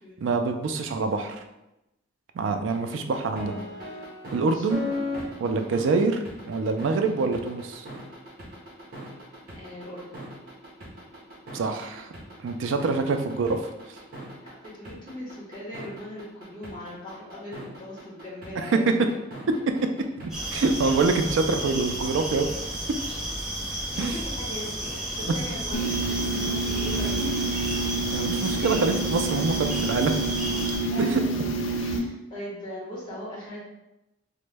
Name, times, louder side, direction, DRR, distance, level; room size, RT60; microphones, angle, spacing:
voice 1, 0.2-1.4 2.3-3.5 4.3-4.8 5.4-6.2 6.5-7.9 11.5-12.1 12.4-13.6 20.2-22.5 24.0-24.2 28.1-30.1 31.0-31.2, right 4 dB, 80° right, 6 dB, 0.4 m, -25 dB
sound 1, 2.7-21.4, left 1 dB, 50° right, 0.8 m, -38 dB
voice 2, 4.3-4.7 9.6-10.2 14.4-19.1 23.9-27.5 30.8-31.5 31.8-33.6, left 1 dB, 25° left, -6 dB, 1.0 m, -39 dB
Israel summer night, 20.3-30.8, right 1 dB, 5° right, 0.7 m, -32 dB
sound 2, 25.7-32.0, right 3 dB, 80° left, 0.4 m, -28 dB
3.0 x 2.1 x 3.3 m, 0.93 s
head